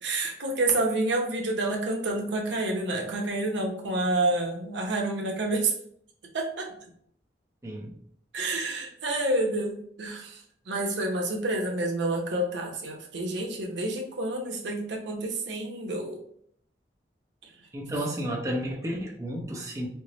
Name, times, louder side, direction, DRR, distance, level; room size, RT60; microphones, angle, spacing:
voice 1, 0.0-5.7 6.3-6.7 8.3-10.4 10.7-16.2, right 2 dB, 85° right, 1 dB, 0.7 m, -28 dB
voice 2, 17.7-19.9, equal, 15° right, -3 dB, 0.6 m, -32 dB
4.5 x 2.0 x 2.8 m, 0.64 s
head